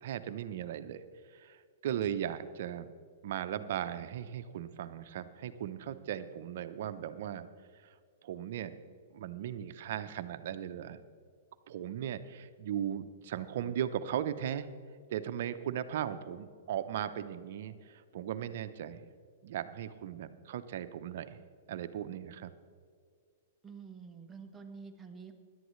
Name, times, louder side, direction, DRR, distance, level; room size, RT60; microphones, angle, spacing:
voice 1, 0.0-1.0 1.3-1.6 1.8-2.9 3.2-7.5 7.8-7.9 8.2-8.8 9.1-11.0 11.7-14.7 15.1-19.0 19.4-21.4 21.7-22.5, right 10 dB, 65° right, 11 dB, 0.8 m, -37 dB
voice 2, 23.6-25.3, right 5 dB, 15° right, 3 dB, 1.3 m, -48 dB
16.5 x 11.5 x 3.2 m, 2.1 s
hypercardioid pair, 125°, 0 cm